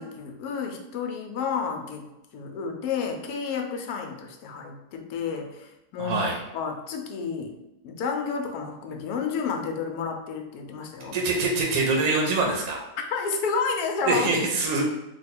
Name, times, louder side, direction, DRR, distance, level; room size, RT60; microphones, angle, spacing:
voice 1, 0.0-2.1 2.3-6.3 6.5-7.5 7.8-11.2 13.1-14.3, left 5 dB, 75° left, 3 dB, 1.1 m, -30 dB
voice 2, 6.0-6.4 11.1-12.8 14.1-14.9, right 3 dB, 70° right, -1 dB, 1.0 m, -24 dB
3.1 x 2.3 x 4.2 m, 0.96 s
omnidirectional pair, 1.7 m